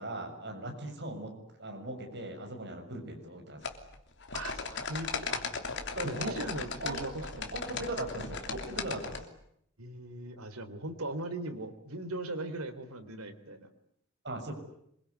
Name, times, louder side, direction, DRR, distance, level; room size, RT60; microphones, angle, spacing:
voice 1, 0.0-1.3 1.6-3.6 5.9-9.2 14.2-14.5, right 1 dB, 50° right, 4 dB, 7.0 m, -39 dB
sound 1, 3.6-9.2, left 4 dB, 55° left, 3.1 m, -37 dB
voice 2, 4.3-5.6 6.1-7.5 9.8-13.7, right 2 dB, 85° right, 8 dB, 3.6 m, -39 dB
26.5 x 23.0 x 9.7 m, 0.75 s
head